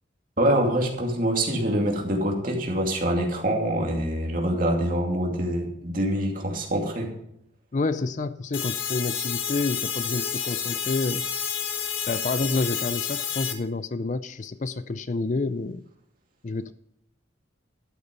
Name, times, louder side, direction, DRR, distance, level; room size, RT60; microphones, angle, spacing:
voice 1, 0.4-7.1, right 1 dB, 45° right, 0 dB, 2.6 m, -25 dB
voice 2, 7.7-11.2 12.1-15.8 16.4-16.7, left 3 dB, 40° left, 13 dB, 0.4 m, -29 dB
sound 1, 8.5-13.5, left 8 dB, 85° left, 1.4 m, -29 dB
12.5 x 8.5 x 5.3 m, 0.77 s
head